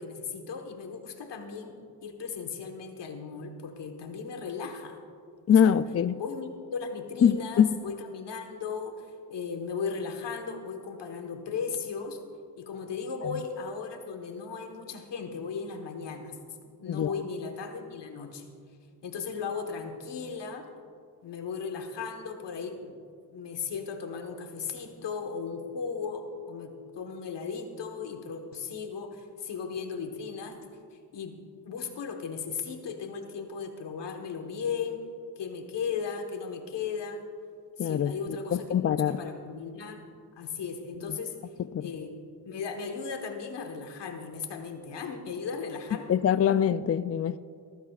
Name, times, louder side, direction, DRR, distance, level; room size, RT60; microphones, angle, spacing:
voice 1, 0.0-5.0 5.5-5.8 6.2-12.2 12.6-16.4 16.8-18.5 19.0-20.7 21.2-23.0 23.3-30.6 31.1-31.4 31.6-35.0 35.4-37.2 37.8-40.1 40.4-41.4 41.8-42.2 42.4-46.2, left 5 dB, 85° left, 1.4 m, -36 dB
voice 2, 5.5-6.2 7.2-7.7 16.9-17.1 37.8-39.2 41.7-41.9 46.1-47.4, left 8 dB, 40° left, 0.4 m, -24 dB
20.5 x 14.5 x 2.4 m
cardioid pair, 65°, 41 cm